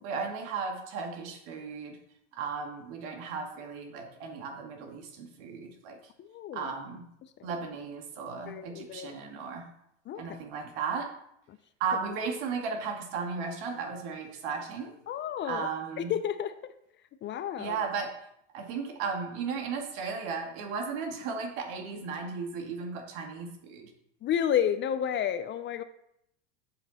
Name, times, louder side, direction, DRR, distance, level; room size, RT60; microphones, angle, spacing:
voice 1, 0.0-2.0 2.3-6.0 6.5-7.1 7.4-9.7 10.2-11.1 11.8-14.9 15.4-16.1 17.6-18.1 18.5-23.9, right 5 dB, 60° right, 3 dB, 2.2 m, -35 dB
voice 2, 6.2-6.7 8.5-9.1 10.1-10.4 15.1-15.7 16.0-16.5 17.2-17.8 24.2-25.8, left 9 dB, 30° left, 12 dB, 0.5 m, -31 dB
7.7 x 7.7 x 4.2 m, 0.75 s
supercardioid pair, 110°, 37 cm